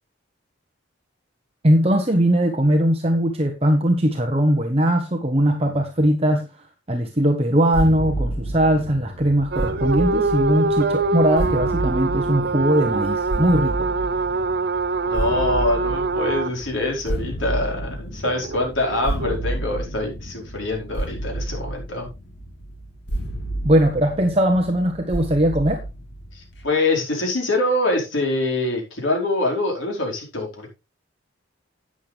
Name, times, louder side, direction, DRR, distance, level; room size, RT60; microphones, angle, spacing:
voice 1, 1.6-13.9 23.6-25.8, right 1 dB, 30° right, 1.2 m, -20 dB
sound 1, 7.7-26.6, right 1 dB, 60° left, 2.9 m, -31 dB
sound 2, 9.5-16.5 18.2-19.3, right 3 dB, 55° right, 0.6 m, -24 dB
voice 2, 15.0-22.1 26.3-30.7, left 2 dB, 80° left, 4.9 m, -24 dB
11.5 x 8.9 x 3.4 m
head